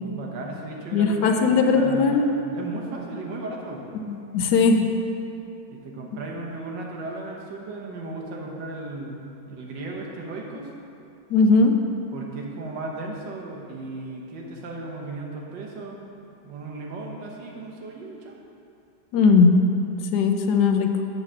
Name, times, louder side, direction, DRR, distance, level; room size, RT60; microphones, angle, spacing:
voice 1, 0.0-3.8 5.7-10.7 12.1-16.0 16.4-18.4, right 2 dB, 90° right, -1 dB, 1.7 m, -36 dB
voice 2, 0.9-2.3 4.1-4.9 11.3-11.7 19.1-19.5 20.1-21.0, left 4 dB, 75° left, 5 dB, 1.1 m, -19 dB
7.8 x 4.8 x 6.2 m, 2.7 s
omnidirectional pair, 1.9 m